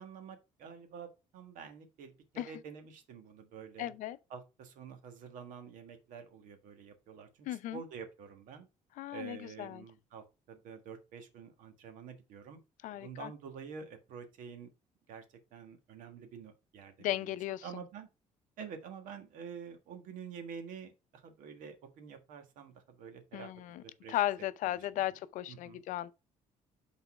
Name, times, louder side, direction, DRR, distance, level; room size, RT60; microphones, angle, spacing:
voice 1, 0.0-3.9 4.3-8.7 9.1-12.6 12.9-14.7 15.1-15.2 15.5-17.3 17.6-18.1 18.6-23.5 23.8-24.2 25.0-25.1 25.5-25.8, right 6 dB, 80° right, 1.4 m, -48 dB
voice 2, 3.8-4.2 7.5-7.8 9.0-9.8 12.8-13.3 17.0-17.6 23.3-23.8 24.1-26.1, left 14 dB, 75° left, 0.5 m, -36 dB
6.0 x 4.1 x 4.8 m
cardioid pair, 140°, 13 cm